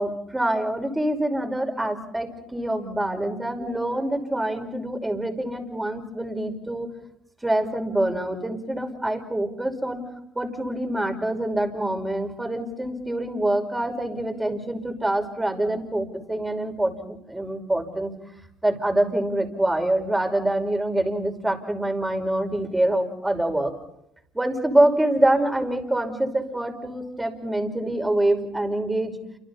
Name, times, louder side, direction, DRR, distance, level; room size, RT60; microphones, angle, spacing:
voice 1, 0.0-6.9 7.4-10.0 10.3-18.1 18.6-23.7 24.3-29.2, right 1 dB, 10° right, 5 dB, 5.5 m, -25 dB
29.5 x 26.5 x 4.3 m, 0.75 s
supercardioid pair, 70°, 0 cm